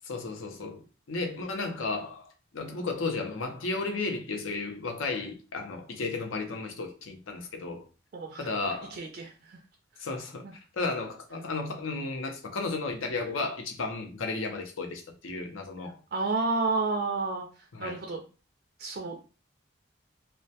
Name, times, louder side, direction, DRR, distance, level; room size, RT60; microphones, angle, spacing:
voice 1, 0.0-7.8 8.4-9.0 10.0-10.4 10.7-16.0 17.7-18.0, left 3 dB, 85° left, 0.6 m, -34 dB
voice 2, 8.1-8.5 8.9-9.6 10.4-10.5 16.1-17.5 17.8-18.2 18.8-19.2, right 3 dB, 50° right, 0.3 m, -30 dB
2.2 x 2.1 x 2.7 m
head